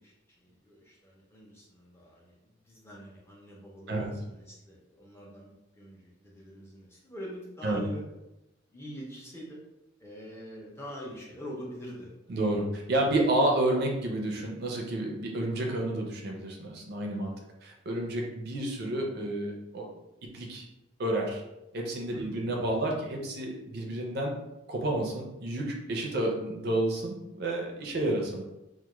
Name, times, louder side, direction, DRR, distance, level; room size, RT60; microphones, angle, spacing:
voice 1, 0.0-8.0 8.7-9.6 10.0-12.4 22.1-22.4 27.8-28.0, equal, 15° left, -4 dB, 0.4 m, -45 dB
voice 2, 12.3-17.3 17.6-19.9 20.3-20.6 21.0-21.4 21.7-24.3 24.7-28.5, right 1 dB, 55° right, 0 dB, 0.4 m, -30 dB
2.2 x 2.0 x 2.9 m, 0.93 s
head